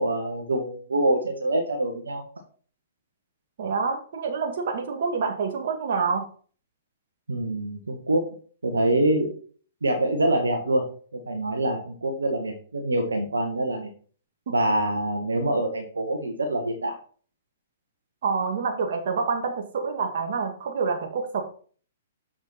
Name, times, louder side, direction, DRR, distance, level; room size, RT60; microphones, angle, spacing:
voice 1, 0.0-2.2 7.3-8.3 8.6-9.3 9.8-10.8 11.1-13.9 14.5-17.0, right 1 dB, 80° right, 4 dB, 1.6 m, -25 dB
voice 2, 3.6-6.3 18.2-21.4, right 5 dB, 60° right, 3 dB, 2.0 m, -27 dB
7.2 x 6.0 x 4.2 m, 0.42 s
figure-of-eight pair, 115°, 0 cm